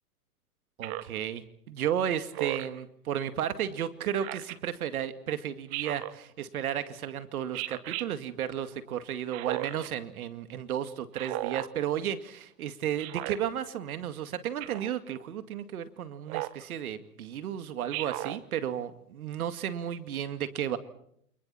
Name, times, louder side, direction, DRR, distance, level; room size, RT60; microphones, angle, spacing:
Speech synthesizer, 0.8-1.2 2.3-2.8 4.2-4.6 5.7-6.2 7.5-8.1 9.3-9.9 11.1-11.7 13.0-13.4 14.6-14.9 16.3-16.6 17.9-18.4, right 17 dB, 35° right, 1.3 m, -35 dB
voice 1, 0.8-20.8, right 10 dB, 65° right, 11 dB, 2.3 m, -33 dB
29.0 x 28.5 x 4.3 m, 0.70 s
hypercardioid pair, 130°, 46 cm